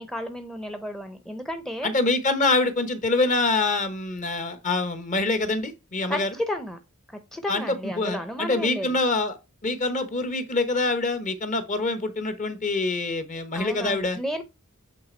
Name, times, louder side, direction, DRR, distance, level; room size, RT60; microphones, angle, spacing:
voice 1, 0.0-1.9 6.1-6.8 7.1-8.9 13.5-14.4, left 1 dB, ahead, 0.7 m, -32 dB
voice 2, 1.8-6.3 7.5-9.4 9.6-14.2, left 3 dB, 35° left, 1.0 m, -25 dB
8.6 x 3.4 x 4.4 m
head